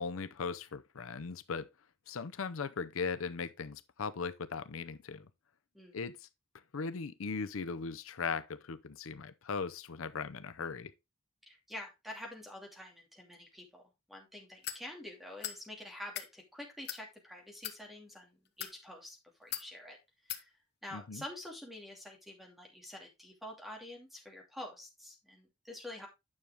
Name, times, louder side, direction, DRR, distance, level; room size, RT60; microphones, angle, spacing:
voice 1, 0.0-1.7 2.1-5.3 5.9-6.3 6.7-10.9 20.9-21.2, left 5 dB, 80° left, 0.6 m, -38 dB
voice 2, 11.4-13.8 14.1-20.0 20.2-20.5 20.8-26.1, left 1 dB, ahead, 2.6 m, -47 dB
sound 1, 14.6-14.8 15.4-15.6 16.0-16.3 16.8-17.0 17.6-17.8 18.5-18.8 19.5-19.7 20.3-20.4, left 10 dB, 50° left, 1.1 m, -39 dB
9.6 x 6.4 x 3.4 m
head